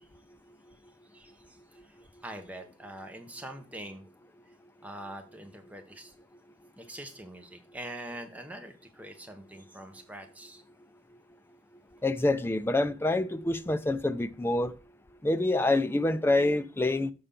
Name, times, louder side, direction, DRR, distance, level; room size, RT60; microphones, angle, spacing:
voice 1, 1.1-1.6 1.8-2.0 2.2-4.0 4.8-6.1 6.8-10.6, right 1 dB, 10° right, 0.9 m, -44 dB
voice 2, 12.0-14.7 15.2-17.1, left 2 dB, 10° left, 0.4 m, -26 dB
6.8 x 5.6 x 3.7 m
head